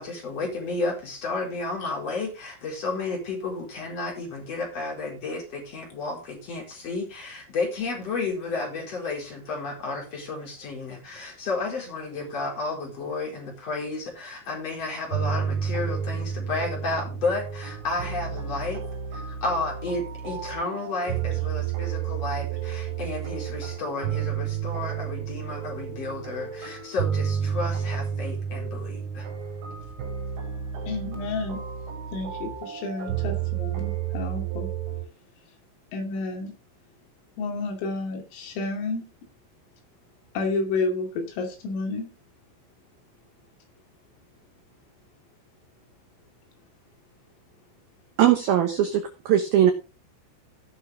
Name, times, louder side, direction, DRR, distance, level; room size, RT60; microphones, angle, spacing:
voice 1, 0.0-18.8 19.1-29.3, left 3 dB, 30° left, -1 dB, 4.7 m, -32 dB
sound 1, 15.1-35.1, right 8 dB, 65° right, 5.5 m, -31 dB
voice 2, 30.9-31.6 32.1-34.7 35.9-36.5 37.4-39.1 40.4-42.1, left 3 dB, 75° left, 2 dB, 5.2 m, -30 dB
voice 3, 48.2-49.7, right 10 dB, 85° right, 6 dB, 2.1 m, -20 dB
17.5 x 6.2 x 3.5 m, 0.31 s
omnidirectional pair, 5.9 m